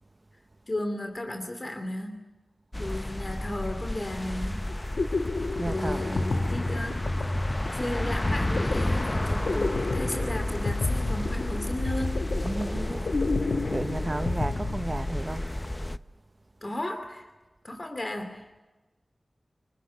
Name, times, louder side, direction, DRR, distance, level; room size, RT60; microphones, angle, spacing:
voice 1, 0.7-2.3 2.8-4.7 5.6-7.1 7.7-12.2 16.6-17.3 17.6-18.6, left 1 dB, 40° left, 2.6 m, -34 dB
sound 1, 2.7-16.0, left 1 dB, 25° left, 0.8 m, -31 dB
sound 2, 4.7-15.5, left 3 dB, 80° left, 1.4 m, -32 dB
voice 2, 5.6-6.3 12.4-15.5, right 2 dB, 35° right, 1.1 m, -34 dB
25.5 x 24.5 x 8.5 m
cardioid pair, 50°, 0 cm